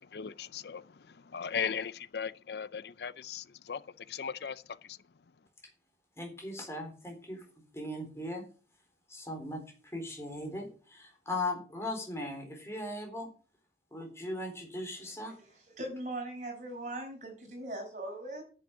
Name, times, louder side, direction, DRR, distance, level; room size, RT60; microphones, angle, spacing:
voice 1, 0.0-5.0, left 6 dB, 65° left, 0.5 m, -38 dB
voice 2, 6.2-7.5 7.7-8.5 9.1-13.3 13.9-15.4, left 1 dB, 15° left, 3.9 m, -38 dB
voice 3, 15.8-18.4, right 1 dB, 45° right, 5.5 m, -39 dB
10.5 x 7.8 x 8.0 m
head